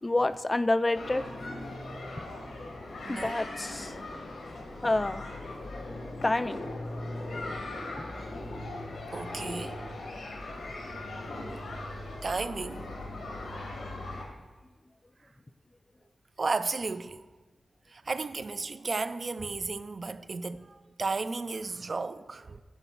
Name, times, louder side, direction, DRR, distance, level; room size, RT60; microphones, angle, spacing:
voice 1, 0.0-1.2 3.1-3.9 4.5-4.6 4.8-5.2 6.2-6.6 8.0-8.1, left 2 dB, 25° left, 0.3 m, -28 dB
sound 1, 0.9-14.3, left 2 dB, 80° left, 1.8 m, -39 dB
voice 2, 3.0-3.4 9.1-9.8 12.2-12.9 16.4-17.2 17.9-22.6, right 3 dB, 50° right, 0.4 m, -34 dB
10.0 x 4.0 x 7.0 m
wide cardioid pair, 90°, 0 cm